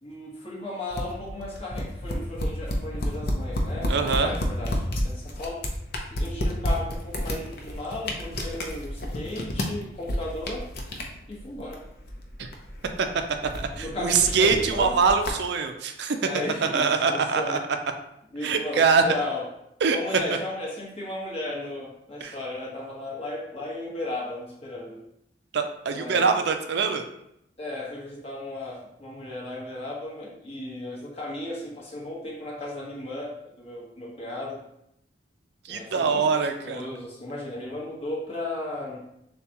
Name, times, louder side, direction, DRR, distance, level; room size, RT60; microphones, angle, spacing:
voice 1, 0.0-5.6 6.1-10.7 11.3-11.8 13.8-14.9 16.2-17.6 18.3-19.4 19.9-25.0 25.9-26.3 27.6-34.6 35.7-39.0, left 2 dB, 35° left, -4 dB, 1.3 m, -35 dB
sound 1, 0.9-15.3, left 1 dB, 60° left, 0.7 m, -31 dB
voice 2, 3.9-4.3 12.4-12.5 13.0-13.1 13.5-16.2 16.7-17.6 18.4-19.0 19.8-20.0 22.2-22.3 25.5-27.0 35.6-36.9, right 5 dB, 65° right, 6 dB, 0.4 m, -23 dB
6.8 x 2.3 x 2.9 m, 0.78 s
head